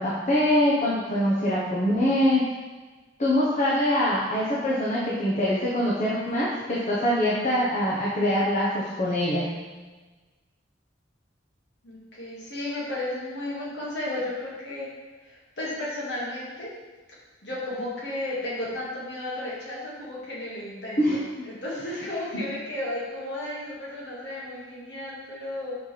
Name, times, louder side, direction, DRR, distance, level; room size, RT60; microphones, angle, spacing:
voice 1, 0.0-2.4 3.2-9.5 21.0-21.3, left 1 dB, 40° left, -6 dB, 1.1 m, -24 dB
voice 2, 11.8-14.9 15.2-16.7 17.4-25.8, left 1 dB, 70° left, -7 dB, 2.2 m, -33 dB
6.3 x 6.0 x 3.4 m, 1.3 s
head